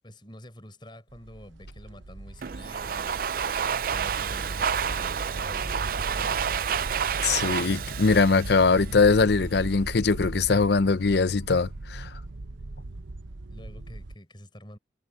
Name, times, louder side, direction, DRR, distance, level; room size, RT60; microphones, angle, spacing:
voice 1, 0.0-3.3 3.8-6.5 13.5-14.8, equal, 25° left, 7.4 m, -47 dB
sound 1, 1.1-14.2, right 2 dB, 90° right, 0.9 m, -38 dB
Domestic sounds home sounds, 2.4-9.3, right 7 dB, 50° right, 0.4 m, -30 dB
voice 2, 7.2-12.1, left 4 dB, 60° left, 0.6 m, -22 dB
head